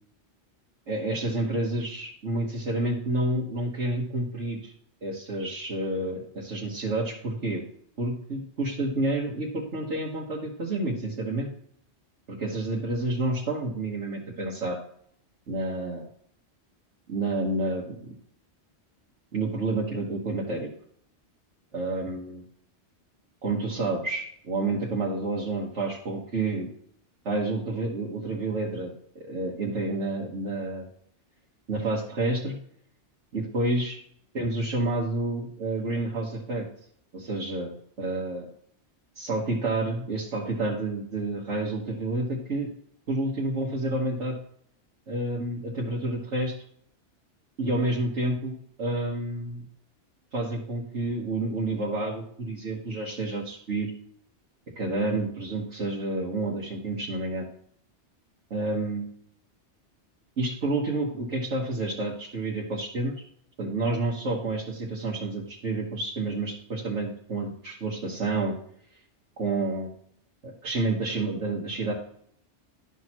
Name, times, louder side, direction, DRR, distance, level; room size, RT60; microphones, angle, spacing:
voice 1, 0.9-4.7 5.0-7.6 8.0-11.5 12.3-14.8 15.5-16.0 17.1-18.1 19.3-20.7 21.7-22.4 23.4-26.7 27.2-30.9 31.7-32.6 33.3-34.0 34.3-36.7 37.1-38.5 39.1-42.7 43.1-44.4 45.1-46.5 47.6-49.6 50.3-53.9 54.8-57.4 58.5-59.1 60.4-63.1 63.6-68.5 69.4-69.9 70.4-71.9, right 2 dB, 90° right, -5 dB, 1.7 m, -29 dB
12.0 x 6.3 x 2.9 m, 0.65 s
omnidirectional pair, 1.2 m